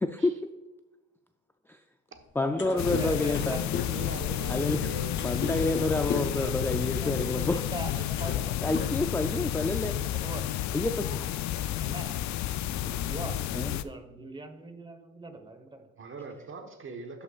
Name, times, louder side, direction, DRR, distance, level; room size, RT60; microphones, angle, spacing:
voice 1, 0.0-0.4 1.7-1.8 2.4-3.6 4.5-4.9 5.2-7.6 8.6-10.0 10.7-11.3 13.5-13.7, left 2 dB, 10° left, 0.4 m, -28 dB
sound 1, 2.2-2.3 2.5-6.5 7.5-7.6 8.0-8.5 8.7-9.6, left 6 dB, 40° left, 0.9 m, -36 dB
voice 2, 2.6-4.5 5.4-5.8 6.1-8.6 10.0-10.6 11.8-12.2 12.8-15.9, right 2 dB, 15° right, 1.2 m, -43 dB
sound 2, 2.8-13.8, left 12 dB, 65° left, 0.4 m, -31 dB
voice 3, 3.9-5.5 16.0-17.2, right 3 dB, 40° right, 1.2 m, -42 dB
12.0 x 5.8 x 2.4 m
cardioid pair, 90°, 30 cm